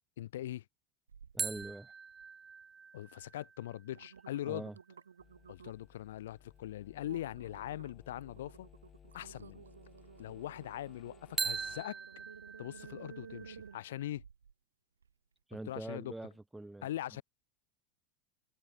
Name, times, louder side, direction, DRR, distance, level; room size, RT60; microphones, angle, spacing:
voice 1, 0.2-0.6 2.9-4.7 5.5-8.7 9.1-9.6 10.2-12.0 12.6-14.2 15.7-16.1 16.8-17.2, left 13 dB, 75° left, 2.1 m, -41 dB
sound 1, 1.1-1.7 2.1-2.6 3.2-3.3 3.7-6.0 6.4-6.6 7.0-14.5 15.0-15.1, right 6 dB, 90° right, 1.3 m, -54 dB
voice 2, 1.3-1.9 4.5-4.7 15.5-16.9, right 2 dB, 5° right, 3.0 m, -44 dB
sound 2, 1.4-4.9 11.4-14.1, right 5 dB, 25° right, 1.3 m, -42 dB
sound 3, 5.2-11.8, left 8 dB, 30° left, 3.3 m, -60 dB
open air
hypercardioid pair, 85°, 0 cm